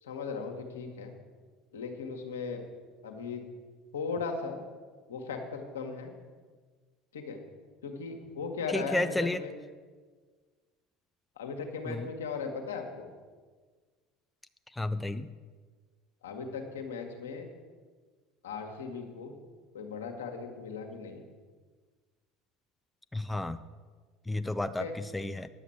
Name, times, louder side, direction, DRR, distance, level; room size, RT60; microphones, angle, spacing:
voice 1, 0.0-1.1 1.7-2.6 3.0-3.4 3.9-4.6 5.1-6.1 7.1-7.4 7.8-9.5 11.4-13.1 16.2-17.5 18.4-19.3 19.7-21.2 24.8-24.9, left 5 dB, 80° left, 3 dB, 1.5 m, -37 dB
voice 2, 8.7-9.4 11.9-12.1 14.8-15.3 23.1-23.6 24.3-25.5, left 2 dB, 10° left, 10 dB, 0.5 m, -32 dB
11.0 x 7.3 x 7.1 m, 1.5 s
hypercardioid pair, 70°, 0 cm